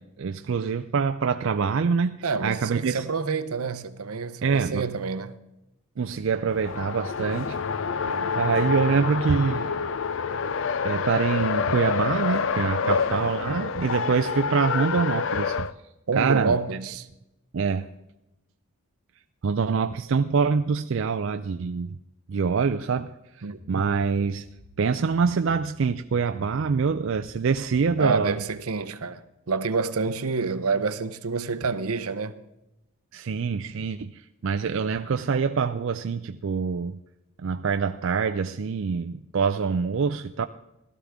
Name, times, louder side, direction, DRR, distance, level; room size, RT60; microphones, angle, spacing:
voice 1, 0.0-3.1 4.4-4.9 6.0-7.6 8.4-9.8 10.4-10.6 10.8-15.7 16.2-16.6 17.5-17.9 19.4-22.0 22.3-24.5 24.8-28.4 33.1-37.0 37.4-40.5, right 5 dB, 60° right, 0.4 m, -25 dB
voice 2, 2.2-5.3 8.1-8.4 12.8-13.2 16.1-17.1 23.4-23.9 28.0-32.3, right 4 dB, 80° right, 0.7 m, -28 dB
Race car auto racing, 6.5-15.7, left 6 dB, 60° left, 0.4 m, -27 dB
sound 1, 23.5-28.7, left 2 dB, 90° left, 1.6 m, -50 dB
16.0 x 13.0 x 3.6 m
head